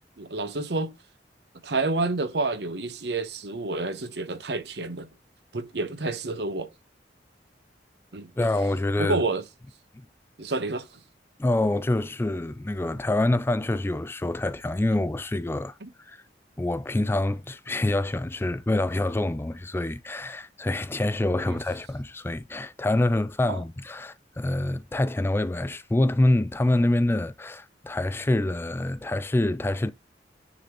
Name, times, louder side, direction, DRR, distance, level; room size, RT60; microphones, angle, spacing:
voice 1, 0.2-0.9 1.6-5.1 5.5-6.7 8.1-8.3 9.0-9.4 10.4-10.9 15.8-15.9 21.3-21.6 23.5-23.6, right 3 dB, 70° right, 0.9 m, -29 dB
voice 2, 8.4-9.2 11.4-15.7 16.1-16.2 16.6-29.9, left 1 dB, 15° left, 0.3 m, -26 dB
9.5 x 4.1 x 3.0 m
head